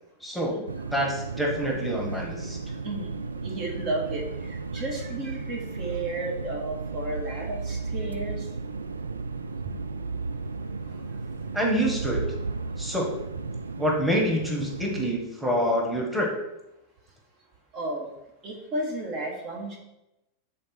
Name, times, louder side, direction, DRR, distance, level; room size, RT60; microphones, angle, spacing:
voice 1, 0.2-0.6 0.9-2.6 11.5-12.2 12.8-13.1 13.8-16.3, equal, ahead, -2 dB, 1.4 m, -26 dB
sound 1, 0.7-15.1, right 4 dB, 75° right, 0.3 m, -34 dB
voice 2, 2.8-8.5 17.7-18.1 18.4-19.8, right 2 dB, 35° right, 0 dB, 1.3 m, -33 dB
7.4 x 3.9 x 4.3 m, 0.92 s
figure-of-eight pair, 90°, 0 cm